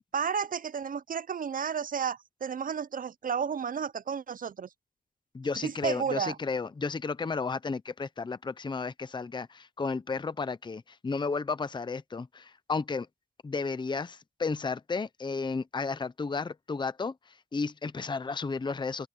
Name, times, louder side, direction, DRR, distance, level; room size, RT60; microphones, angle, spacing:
voice 1, 0.1-4.7 5.6-6.4, right 7 dB, 50° right, 0.5 m, -32 dB
voice 2, 5.3-13.1 13.4-17.1 17.5-19.1, left 4 dB, 25° left, 0.7 m, -33 dB
open air
wide cardioid pair, 115°, 19 cm